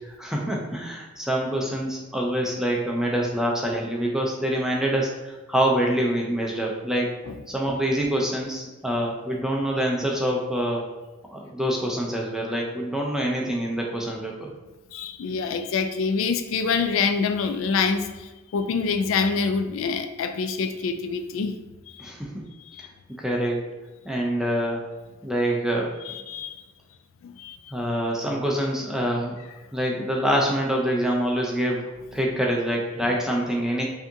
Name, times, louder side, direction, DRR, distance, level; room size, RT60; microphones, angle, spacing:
voice 1, 0.1-7.1 7.5-10.8 11.3-14.5 22.0-22.5 22.8-22.9 23.2-23.6 24.0-24.8 25.2-25.9 27.7-29.4 29.7-33.8, right 1 dB, 5° right, -2 dB, 0.4 m, -25 dB
voice 2, 14.9-21.6 21.9-22.1 22.7-22.9 26.0-26.6 27.2-27.7, left 5 dB, 90° left, 8 dB, 0.3 m, -26 dB
4.8 x 2.7 x 2.6 m, 1.2 s
head